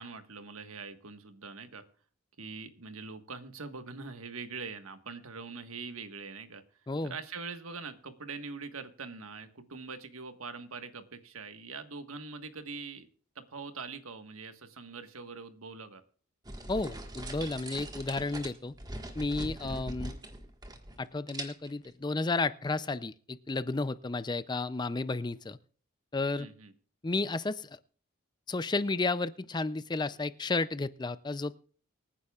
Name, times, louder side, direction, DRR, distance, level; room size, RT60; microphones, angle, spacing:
voice 1, 0.0-1.8 2.4-6.6 7.0-13.1 13.3-16.0 19.6-19.8 26.4-26.7, right 4 dB, 80° right, 8 dB, 1.5 m, -43 dB
sound 1, 16.4-21.0 21.3-21.9, right 1 dB, 20° right, 1.5 m, -41 dB
voice 2, 16.7-18.7 19.2-20.1 21.0-25.6 26.1-26.5 27.0-27.7 28.5-31.5, left 3 dB, 20° left, 15 dB, 0.4 m, -32 dB
25.0 x 9.8 x 2.4 m, 0.44 s
head